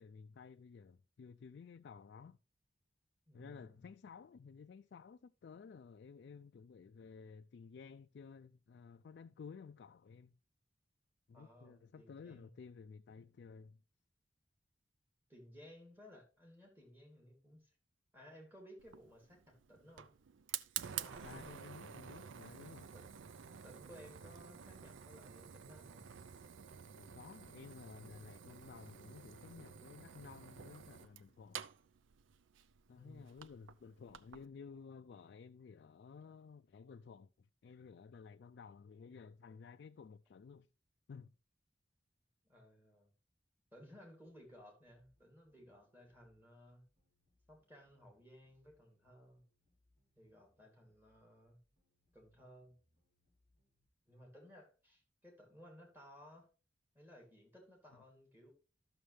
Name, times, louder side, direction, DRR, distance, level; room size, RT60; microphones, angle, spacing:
voice 1, 0.0-2.4 3.3-10.4 11.3-13.8 21.2-22.9 27.0-31.6 32.9-40.7 41.1-41.3, left 5 dB, 60° left, 0.3 m, -54 dB
voice 2, 3.3-3.9 11.3-12.5 15.3-17.7 18.1-20.2 21.0-22.0 22.9-23.1 23.6-26.1 33.0-33.3 42.5-43.1 43.7-46.9 47.5-49.4 50.2-51.6 52.1-52.8 54.1-56.5 56.9-58.5, equal, 10° right, 2.7 m, -59 dB
Fire, 18.8-34.5, right 9 dB, 85° right, 0.5 m, -50 dB
sound 1, 44.3-53.9, left 1 dB, 45° right, 5.2 m, -80 dB
12.5 x 6.4 x 3.3 m
head